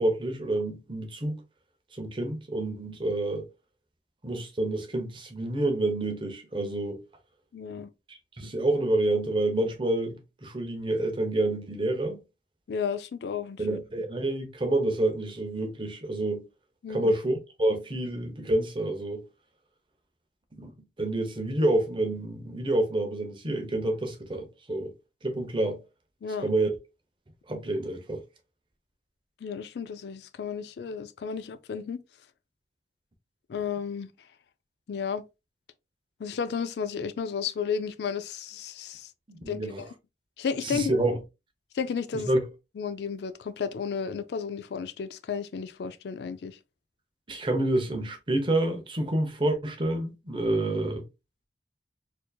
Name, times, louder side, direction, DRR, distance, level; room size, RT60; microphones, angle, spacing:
voice 1, 0.0-1.4 1.9-3.4 4.2-7.0 8.1-12.2 13.6-16.4 16.9-19.2 20.6-20.7 21.0-24.9 25.2-25.8 26.4-26.7 27.5-28.2 39.3-39.8 40.6-41.2 42.1-42.4 47.3-51.0, right 1 dB, 25° right, 0.7 m, -28 dB
voice 2, 7.5-7.9 12.7-13.8 16.8-17.1 26.2-26.5 29.4-32.0 33.5-34.1 34.9-35.2 36.2-39.1 39.5-39.9 40.4-41.0 41.7-42.3 42.8-46.6, left 6 dB, 65° left, 0.3 m, -33 dB
4.3 x 2.7 x 2.2 m
head